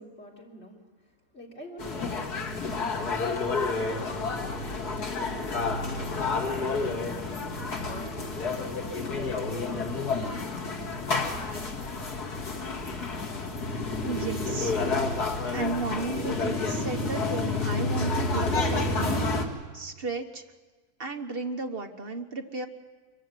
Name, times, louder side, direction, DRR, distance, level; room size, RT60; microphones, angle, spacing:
voice 1, 0.0-4.2 4.8-11.2, equal, 40° left, -2 dB, 3.7 m, -46 dB
sound 1, 1.8-19.4, left 3 dB, 85° left, 2.6 m, -30 dB
voice 2, 14.0-14.8 15.5-19.3 19.7-20.4 21.0-22.7, right 3 dB, 40° right, 5 dB, 1.4 m, -34 dB
24.5 x 15.0 x 9.4 m, 1.4 s
omnidirectional pair, 1.6 m